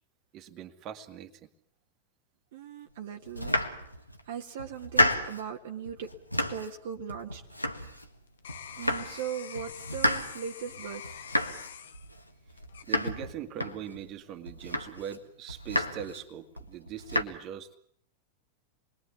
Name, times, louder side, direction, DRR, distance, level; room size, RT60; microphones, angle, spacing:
voice 1, 0.3-1.5 12.9-17.8, right 9 dB, 35° right, 8 dB, 2.0 m, -41 dB
voice 2, 2.5-3.5 4.2-6.1 6.5-7.4 8.8-11.2 14.6-14.7, right 8 dB, 55° right, 3 dB, 1.6 m, -39 dB
Domestic sounds home sounds, 3.2-4.2 4.6-5.5 5.9-6.8 7.1-8.2 8.5-9.3 9.5-14.1 14.5-15.2 15.5-16.2 16.6-17.2, left 1 dB, 90° left, 1.7 m, -31 dB
sound 1, 7.3-13.5 14.0-14.5, left 8 dB, 65° left, 1.3 m, -46 dB
28.5 x 21.5 x 8.4 m, 0.65 s
figure-of-eight pair, 90°, 0 cm